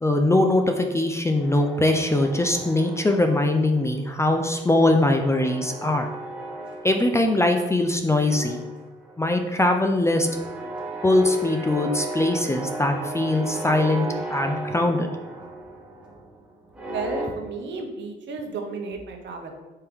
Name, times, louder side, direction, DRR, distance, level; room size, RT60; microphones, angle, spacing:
voice 1, 0.0-6.1 6.8-8.6 9.2-10.3 11.0-15.1, left 2 dB, 15° left, 4 dB, 0.4 m, -21 dB
sound 1, 1.4-3.9 4.2-7.8 8.1-17.3, right 2 dB, 5° right, 1.1 m, -36 dB
voice 2, 16.9-19.5, right 3 dB, 65° right, 4 dB, 0.8 m, -33 dB
4.4 x 3.4 x 3.5 m, 1.2 s
cardioid pair, 90°, 20 cm